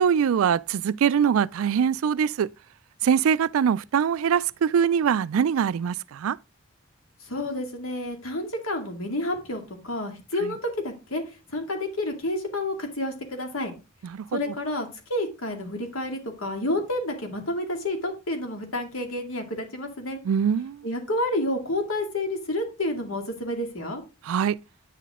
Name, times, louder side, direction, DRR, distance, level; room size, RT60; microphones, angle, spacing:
voice 1, 0.0-2.5 3.0-6.4 10.4-10.5 14.1-14.4 20.2-20.8 24.3-24.6, right 7 dB, 80° right, 0.3 m, -23 dB
voice 2, 7.2-10.6 10.8-11.2 11.5-13.7 14.3-20.2 20.8-24.0, left 1 dB, 80° left, 2.3 m, -30 dB
9.1 x 5.9 x 3.6 m
head